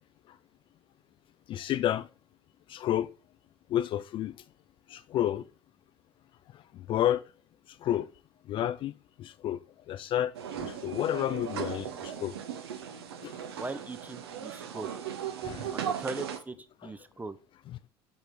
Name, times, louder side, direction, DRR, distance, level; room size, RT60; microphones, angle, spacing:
voice 1, 1.5-2.1 2.7-3.1 3.7-4.3 4.9-5.4 6.9-7.3 7.8-8.1 8.5-8.9 9.2-9.6 9.9-10.3 10.6-12.3 13.2-13.3 15.4-15.7, left 11 dB, 40° left, 0.3 m, -30 dB
sound 1, 10.3-16.4, right 8 dB, 70° right, 0.8 m, -37 dB
voice 2, 13.6-14.9 15.7-16.6 16.8-17.4, right 2 dB, 10° right, 0.6 m, -39 dB
7.1 x 4.4 x 3.4 m
figure-of-eight pair, 60°, 13 cm